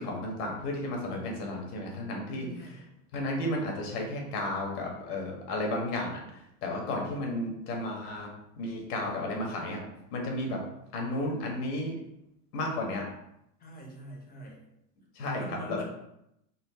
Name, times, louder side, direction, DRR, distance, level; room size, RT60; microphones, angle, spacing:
voice 1, 0.0-2.7 3.1-9.8 10.1-10.6 10.9-11.9 12.5-13.0 15.1-15.8, left 1 dB, 70° left, 0 dB, 1.6 m, -33 dB
voice 2, 2.3-2.9 13.6-14.6 15.2-15.8, left 1 dB, 20° left, 0 dB, 0.9 m, -44 dB
4.4 x 2.6 x 4.1 m, 0.82 s
supercardioid pair, 145°, 48 cm